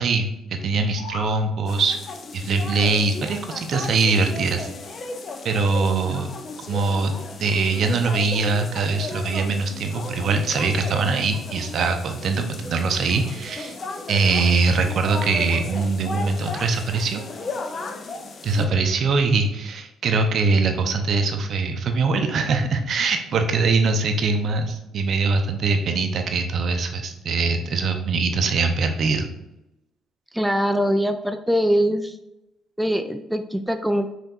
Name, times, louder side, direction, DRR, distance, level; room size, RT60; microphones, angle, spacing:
voice 1, 0.0-2.0 2.3-4.7 5.4-6.3 6.7-7.1 7.4-13.8 14.1-17.2 18.4-29.3, right 4 dB, 55° right, 5 dB, 0.5 m, -22 dB
sound 1, 0.7-1.4, left 2 dB, 85° left, 1.1 m, -37 dB
sound 2, 1.7-18.7, left 3 dB, 45° left, 0.5 m, -35 dB
voice 2, 30.3-32.2 32.8-34.1, equal, 5° right, 8 dB, 0.3 m, -22 dB
5.2 x 2.8 x 2.4 m, 0.90 s
hypercardioid pair, 50°, 0 cm